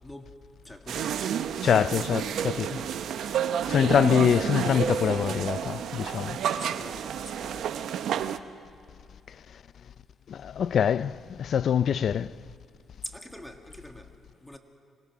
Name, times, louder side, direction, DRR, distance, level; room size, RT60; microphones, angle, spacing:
voice 1, 0.0-0.3 0.6-2.7 5.0-5.2 6.6-7.7 13.0-14.1 14.4-14.6, equal, 5° left, 1.9 m, -45 dB
sound 1, 0.9-8.4, right 9 dB, 70° right, 0.8 m, -30 dB
voice 2, 1.6-2.9 3.2-3.4 3.7-6.4 10.3-12.4, left 8 dB, 60° left, 0.5 m, -25 dB
26.0 x 20.5 x 6.2 m
cardioid pair, 90°, 0 cm